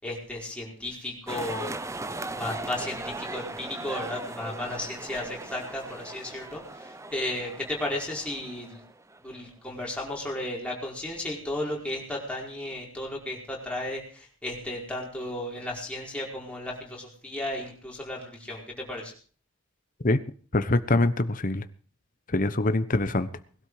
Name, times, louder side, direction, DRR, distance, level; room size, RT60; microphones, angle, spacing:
voice 1, 0.0-1.7 2.3-6.6 7.1-8.8 9.2-19.1, left 1 dB, 5° left, -3 dB, 5.0 m, -34 dB
sound 1, 1.3-9.4, right 2 dB, 15° right, 0.8 m, -38 dB
voice 2, 20.5-21.7 22.3-23.3, left 2 dB, 40° left, 12 dB, 1.0 m, -24 dB
21.0 x 12.5 x 4.9 m, 0.44 s
head